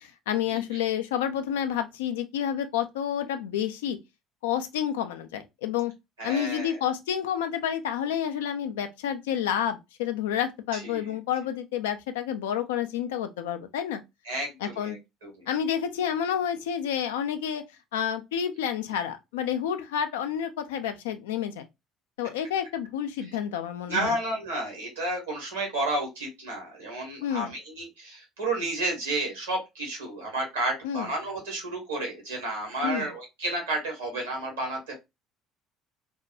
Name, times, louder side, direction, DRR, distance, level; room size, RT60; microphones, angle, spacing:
voice 1, 0.0-4.0 4.4-5.9 6.2-14.0 14.6-15.0 15.5-17.6 17.9-21.7 22.2-24.2 27.2-27.5 30.8-31.1 32.8-33.1, left 9 dB, 75° left, 0.3 m, -29 dB
voice 2, 6.2-6.8 10.7-11.2 14.3-15.5 23.9-34.9, right 2 dB, 80° right, 1.1 m, -31 dB
2.6 x 2.2 x 2.5 m
figure-of-eight pair, 55°, 0 cm